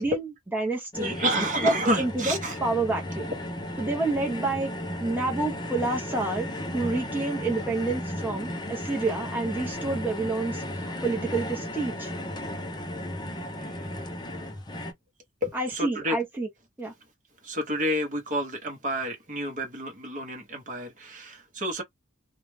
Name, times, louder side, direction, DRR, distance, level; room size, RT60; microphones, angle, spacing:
voice 1, 0.0-1.2 1.6-3.3 3.8-4.7 5.0-6.5 6.7-12.1 15.5-16.5 16.8-16.9, right 2 dB, 10° right, 0.9 m, -29 dB
sound 1, 0.9-14.9, left 1 dB, 20° left, 0.6 m, -35 dB
voice 2, 1.0-2.6 13.6-14.0 15.4-16.2 17.4-21.8, equal, 40° right, 0.9 m, -29 dB
2.4 x 2.1 x 3.2 m
head